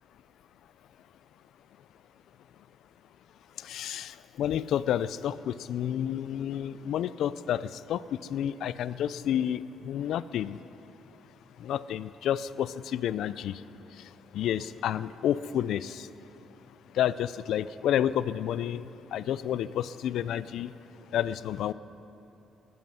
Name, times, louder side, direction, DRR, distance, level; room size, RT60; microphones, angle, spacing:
voice 1, 3.6-8.0 8.3-10.6 11.6-13.6 14.3-16.1 16.9-20.7 21.1-21.7, left 10 dB, 75° left, 17 dB, 0.4 m, -30 dB
19.0 x 13.5 x 5.6 m, 2.7 s
cardioid pair, 90°, 0 cm